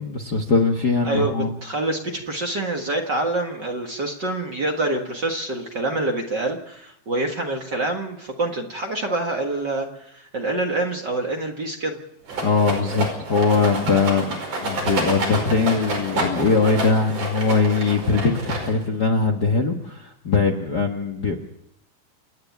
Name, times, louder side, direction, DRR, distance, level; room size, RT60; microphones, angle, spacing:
voice 1, 0.0-1.5 12.4-21.3, left 4 dB, 45° left, 4 dB, 1.4 m, -21 dB
voice 2, 1.0-12.0, right 2 dB, 40° right, 2 dB, 1.8 m, -26 dB
Rattle, 12.3-19.0, right 2 dB, 70° right, 6.8 m, -28 dB
29.0 x 9.8 x 9.4 m, 0.77 s
omnidirectional pair, 3.8 m